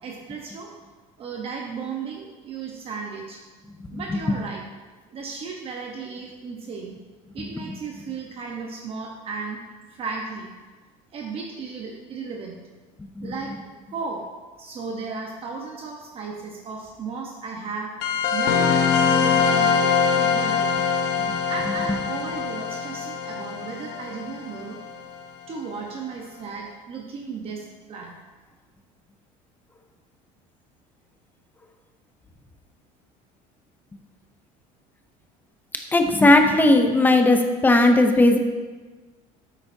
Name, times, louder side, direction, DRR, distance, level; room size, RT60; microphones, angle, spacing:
voice 1, 0.0-0.7 1.2-3.4 3.9-4.6 5.1-6.9 7.3-9.6 9.9-10.5 11.1-12.6 13.2-13.5 13.9-14.2 14.6-17.9 18.3-19.9 20.1-20.8 21.5-24.8 25.5-28.1, right 4 dB, 35° right, 0 dB, 1.0 m, -35 dB
voice 2, 3.9-4.4 13.2-13.3 21.3-21.4 35.9-38.4, left 2 dB, 10° left, 5 dB, 0.7 m, -17 dB
sound 1, 18.0-25.1, left 6 dB, 80° left, 1.1 m, -23 dB
9.8 x 8.3 x 2.7 m, 1.3 s
cardioid pair, 140°, 16 cm